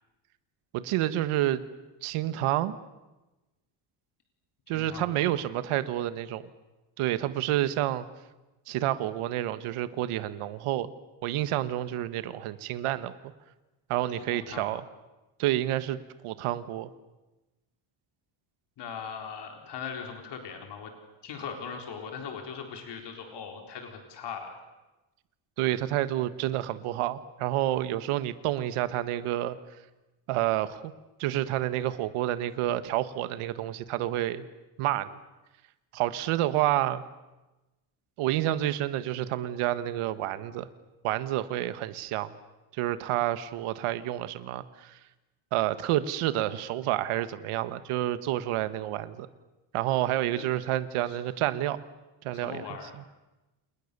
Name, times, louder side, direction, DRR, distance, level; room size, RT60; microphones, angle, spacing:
voice 1, 0.7-1.6 2.0-2.8 4.7-6.4 7.0-8.1 8.7-10.9 11.2-13.1 13.9-14.8 15.4-16.0 16.2-16.9 25.6-29.6 30.3-30.9 31.2-34.4 34.8-35.2 35.9-37.0 38.2-40.7 41.0-42.3 42.7-44.9 45.5-49.3 49.7-51.8 52.2-52.7, right 13 dB, 90° right, 13 dB, 1.7 m, -29 dB
voice 2, 4.7-5.4 14.2-14.7 18.8-20.9 21.2-24.5 50.3-50.5 51.0-51.2 52.3-52.9, left 6 dB, 55° left, 4 dB, 4.2 m, -40 dB
29.0 x 28.0 x 6.9 m, 1.1 s
cardioid pair, 160°, 49 cm